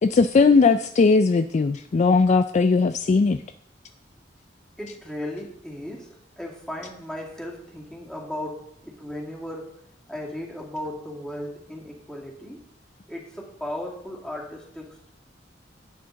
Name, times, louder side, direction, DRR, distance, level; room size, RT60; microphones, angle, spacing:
voice 1, 0.0-3.4, left 4 dB, 40° left, 10 dB, 0.3 m, -18 dB
voice 2, 4.8-9.8 10.1-12.6 13.1-15.1, left 1 dB, 5° left, -3 dB, 2.2 m, -36 dB
11.0 x 8.6 x 3.9 m, 0.68 s
head